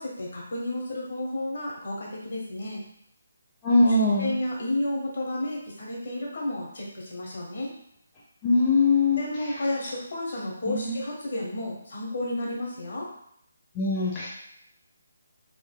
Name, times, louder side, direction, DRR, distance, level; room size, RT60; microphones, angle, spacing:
voice 1, 0.0-2.8 4.2-7.7 9.2-13.1, left 1 dB, 55° left, -3 dB, 1.2 m, -32 dB
voice 2, 3.6-4.3 8.4-9.2 10.7-11.0 13.8-14.3, left 3 dB, 20° left, -7 dB, 0.6 m, -21 dB
3.2 x 3.0 x 2.2 m, 0.70 s
figure-of-eight pair, 155°, 0 cm